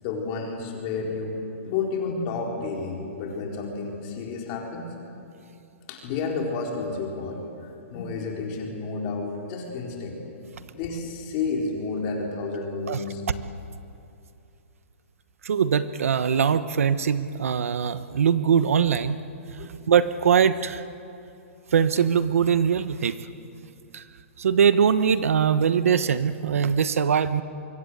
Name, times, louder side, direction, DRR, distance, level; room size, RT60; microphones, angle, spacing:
voice 1, 0.0-4.8 5.9-10.2 10.7-13.2 19.6-19.7, left 4 dB, 30° left, 0 dB, 4.4 m, -31 dB
voice 2, 15.4-19.2 19.5-19.6 19.9-20.8 21.7-23.2 23.9-24.0 24.4-27.4, right 7 dB, 80° right, 13 dB, 1.1 m, -22 dB
25.0 x 24.0 x 8.1 m, 2.7 s
hypercardioid pair, 165°, 7 cm